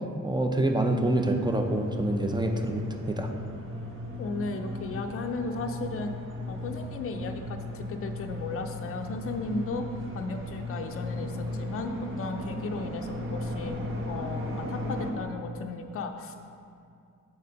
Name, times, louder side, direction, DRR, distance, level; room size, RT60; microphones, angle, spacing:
voice 1, 0.2-3.3, right 2 dB, 15° right, 4 dB, 0.5 m, -27 dB
sound 1, 0.6-15.1, left 1 dB, 40° right, 0.9 m, -36 dB
voice 2, 4.2-6.1 6.5-9.9 10.1-13.7 14.1-16.4, left 3 dB, 45° left, 4 dB, 0.5 m, -35 dB
7.0 x 4.2 x 5.2 m, 2.4 s
cardioid pair, 90°, 33 cm